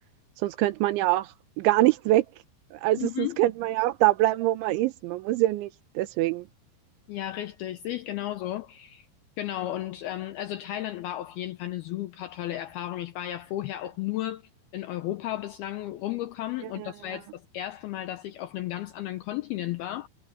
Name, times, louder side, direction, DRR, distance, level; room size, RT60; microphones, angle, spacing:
voice 1, 0.4-2.3 2.7-6.5 16.6-17.2, right 16 dB, 80° right, 3.4 m, -25 dB
voice 2, 3.0-3.4 7.1-9.1 9.4-14.4 14.7-20.1, left 14 dB, 85° left, 2.2 m, -34 dB
omnidirectional pair, 5.4 m